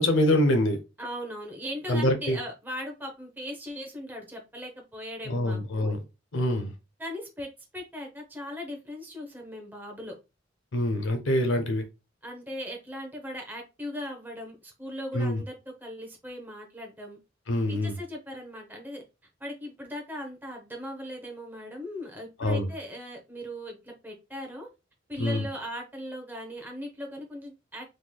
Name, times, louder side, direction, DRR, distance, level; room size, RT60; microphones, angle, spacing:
voice 1, 0.0-0.8 1.9-2.4 5.3-6.0 6.3-6.7 10.7-11.9 15.1-15.4 17.5-17.9 22.4-22.7 25.2-25.4, left 1 dB, 75° left, 0.6 m, -25 dB
voice 2, 1.0-5.9 7.0-10.2 12.2-15.6 15.8-17.2 17.7-19.0 19.4-24.7 25.1-27.9, equal, 10° right, 0.7 m, -39 dB
3.7 x 3.1 x 2.2 m
head